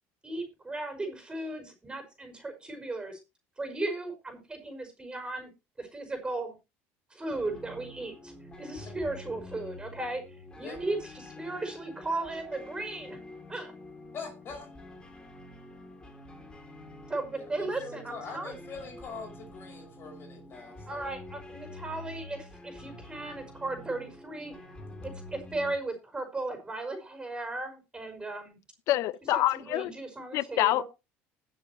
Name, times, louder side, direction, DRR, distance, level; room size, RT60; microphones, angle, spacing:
voice 1, 0.2-3.2 3.6-5.5 5.8-6.6 7.1-8.3 8.6-10.2 10.6-13.2 13.5-13.7 17.1-18.5 20.9-24.5 25.0-28.6 29.3-30.8, right 2 dB, 15° right, 5.5 m, -36 dB
sound 1, 7.3-25.8, left 2 dB, 15° left, 2.9 m, -47 dB
voice 2, 14.1-14.7 17.4-21.1, left 4 dB, 40° left, 5.9 m, -43 dB
voice 3, 28.9-29.9 30.3-30.8, left 15 dB, 65° left, 0.8 m, -26 dB
20.5 x 7.3 x 3.0 m
supercardioid pair, 105°, 6 cm